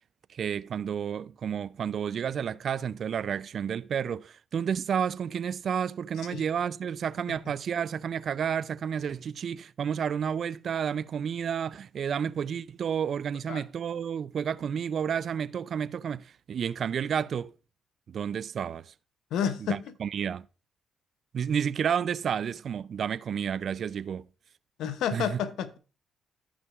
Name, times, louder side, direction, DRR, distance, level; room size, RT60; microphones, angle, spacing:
voice 1, 0.3-17.5 18.1-18.9 19.7-20.5 21.3-24.3 25.1-25.4, right 8 dB, 60° right, 0.3 m, -31 dB
voice 2, 19.3-19.9 24.8-25.8, left 8 dB, 80° left, 0.7 m, -30 dB
13.5 x 5.7 x 2.4 m
supercardioid pair, 65°, 0 cm